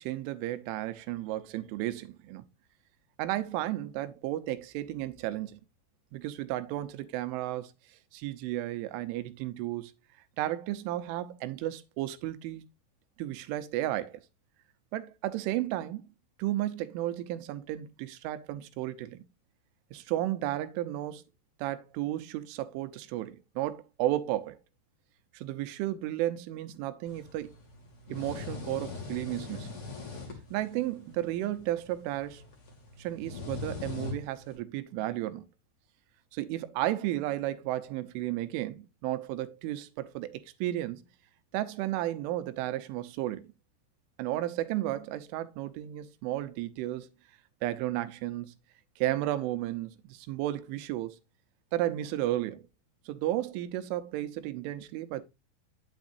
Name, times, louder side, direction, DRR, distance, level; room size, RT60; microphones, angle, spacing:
voice 1, 0.0-2.4 3.2-5.6 6.1-7.7 8.1-9.9 10.4-12.6 13.2-14.2 14.9-16.1 16.4-19.2 19.9-21.2 21.6-24.6 25.3-27.5 28.1-29.7 30.5-32.4 33.0-35.5 36.3-41.1 41.5-43.5 44.2-47.1 47.6-48.6 49.0-51.2 51.7-52.7 53.1-55.2, right 14 dB, 80° right, 3.3 m, -33 dB
sound 1, 27.1-34.6, left 4 dB, 40° left, 2.5 m, -42 dB
9.8 x 7.2 x 2.7 m
omnidirectional pair, 5.6 m